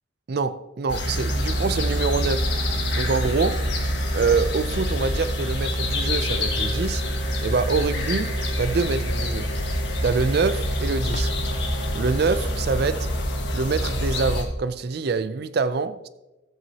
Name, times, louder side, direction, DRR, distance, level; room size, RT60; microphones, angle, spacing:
voice 1, 0.3-2.5 3.0-3.7 4.1-7.0 7.4-9.5 10.0-11.3 11.9-13.1 13.5-16.1, right 4 dB, 50° right, 0.4 m, -25 dB
sound 1, 0.9-14.4, equal, 60° left, 1.5 m, -26 dB
sound 2, 11.0-11.9, left 1 dB, 40° left, 0.6 m, -35 dB
14.0 x 8.3 x 2.8 m
head